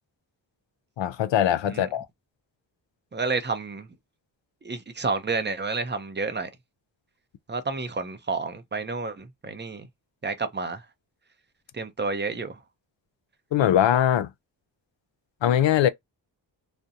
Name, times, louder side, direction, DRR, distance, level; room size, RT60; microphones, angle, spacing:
voice 1, 1.0-2.1 13.5-14.3 15.4-15.9, left 10 dB, 75° left, 0.5 m, -21 dB
voice 2, 3.1-3.9 4.6-6.5 7.5-9.9 10.2-10.8 11.7-12.6, right 4 dB, 25° right, 0.6 m, -30 dB
2.4 x 2.1 x 2.7 m
wide cardioid pair, 100°, 45 cm